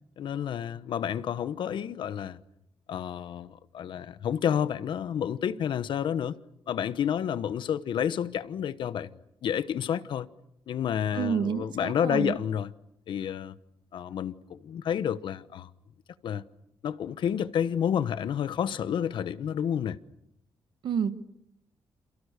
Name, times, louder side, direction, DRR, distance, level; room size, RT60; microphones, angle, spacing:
voice 1, 0.2-2.4 2.9-6.4 6.7-10.3 10.7-12.7 13.1-13.5 13.9-15.7 16.2-16.4 16.8-20.0, left 9 dB, 65° left, 1.1 m, -30 dB
voice 2, 11.1-12.4 20.8-21.1, right 7 dB, 60° right, 1.4 m, -29 dB
29.5 x 28.0 x 6.8 m
wide cardioid pair, 155°, 9 cm